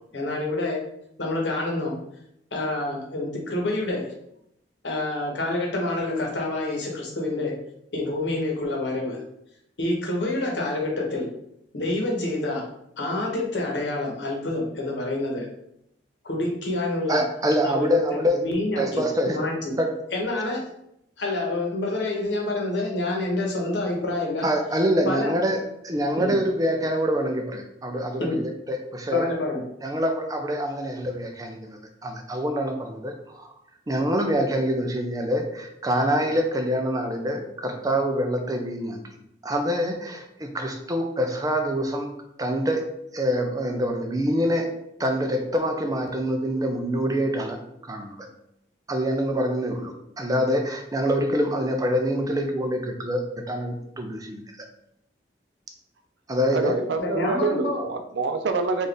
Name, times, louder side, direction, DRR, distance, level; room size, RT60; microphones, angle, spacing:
voice 1, 0.1-0.8 1.2-1.9 2.5-4.0 4.8-7.5 7.9-9.2 9.8-11.3 11.7-12.6 13.0-15.5 16.2-17.2 17.6-19.7 20.1-20.6 21.2-24.5 25.0-25.3 26.2-26.3 28.2-28.4 29.1-29.6 57.0-57.8, left 2 dB, 85° left, -1 dB, 1.0 m, -27 dB
voice 2, 17.1-18.4 18.8-19.4 19.8-19.9 24.4-29.3 29.8-33.5 33.9-39.0 39.4-42.1 42.4-42.8 43.1-44.7 45.0-48.3 48.9-53.2 53.5-54.4 56.3-56.7, equal, 20° right, 4 dB, 0.5 m, -25 dB
voice 3, 56.5-58.9, right 3 dB, 80° right, 6 dB, 0.5 m, -26 dB
4.0 x 2.5 x 3.4 m, 0.78 s
head